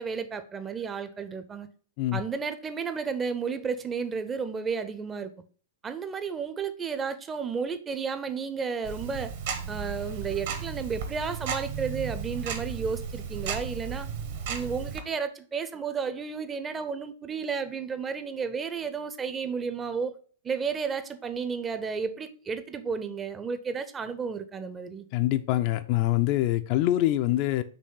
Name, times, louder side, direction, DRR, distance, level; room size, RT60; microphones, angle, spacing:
voice 1, 0.0-1.7 2.1-5.3 5.8-9.3 9.7-14.1 14.5-20.1 20.4-25.1, right 5 dB, 15° right, 0.5 m, -32 dB
Tick-tock, 8.8-15.0, right 6 dB, 50° right, 0.9 m, -34 dB
voice 2, 25.1-27.6, left 15 dB, 40° left, 0.3 m, -25 dB
5.3 x 3.2 x 5.6 m
figure-of-eight pair, 105°, 0 cm